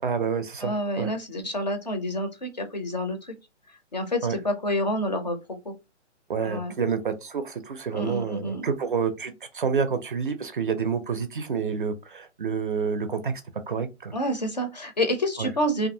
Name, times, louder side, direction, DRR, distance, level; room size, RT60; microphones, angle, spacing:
voice 1, 0.0-1.1 4.2-4.4 6.3-13.4 13.7-14.1 15.4-15.5, right 6 dB, 45° right, 0.4 m, -28 dB
voice 2, 0.6-3.3 3.9-5.7 6.4-6.7 7.9-8.7 14.1-15.9, equal, 35° left, 0.4 m, -28 dB
2.7 x 2.4 x 2.6 m
hypercardioid pair, 165°, 37 cm